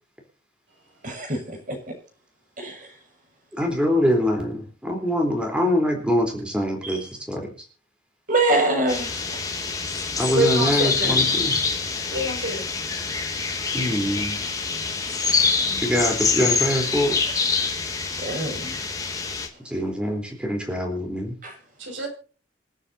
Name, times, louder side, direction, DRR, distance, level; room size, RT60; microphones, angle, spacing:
voice 1, 1.0-1.9 2.6-2.9 6.8-7.0 8.3-9.4 18.2-18.7 21.4-21.6, right 2 dB, 45° right, 6.5 m, -25 dB
voice 2, 3.6-7.5 10.2-11.6 13.7-14.4 15.8-17.1 19.6-21.4, equal, 5° right, 3.8 m, -24 dB
sound 1, 8.9-19.5, left 4 dB, 20° left, 2.9 m, -25 dB
voice 3, 10.3-11.2 12.1-12.7 15.6-15.8 21.8-22.1, right 1 dB, 75° right, 6.2 m, -26 dB
27.5 x 9.9 x 2.8 m
head